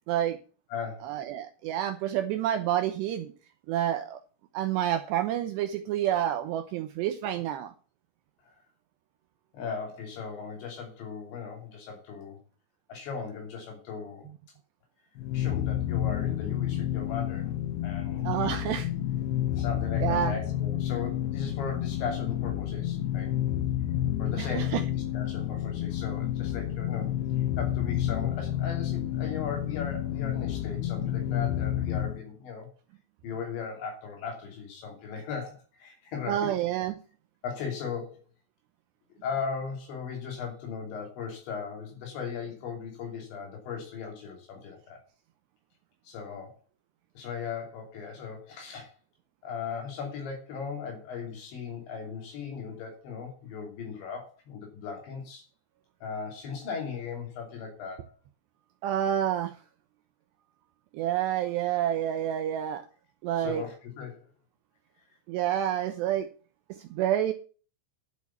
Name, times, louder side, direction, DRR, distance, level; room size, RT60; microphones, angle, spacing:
voice 1, 0.1-0.4 1.0-3.3 3.7-4.2 4.5-7.7 18.2-18.9 20.0-20.4 24.4-24.8 36.3-37.0 58.8-59.5 60.9-62.9 63.2-63.6 65.3-66.3 66.7-67.3, right 11 dB, 90° right, 2.4 m, -28 dB
voice 2, 0.7-1.1 7.3-7.4 8.4-8.6 9.5-12.4 12.9-14.3 15.3-17.5 17.8-18.6 19.5-23.3 24.2-27.1 27.6-32.7 33.2-36.5 37.4-38.2 39.2-45.0 46.0-46.6 47.1-48.9 49.4-55.4 56.0-58.1 63.3-64.2, left 6 dB, 65° left, 4.9 m, -37 dB
sound 1, 15.2-32.2, left 11 dB, 80° left, 2.6 m, -30 dB
11.5 x 6.6 x 7.1 m
omnidirectional pair, 5.9 m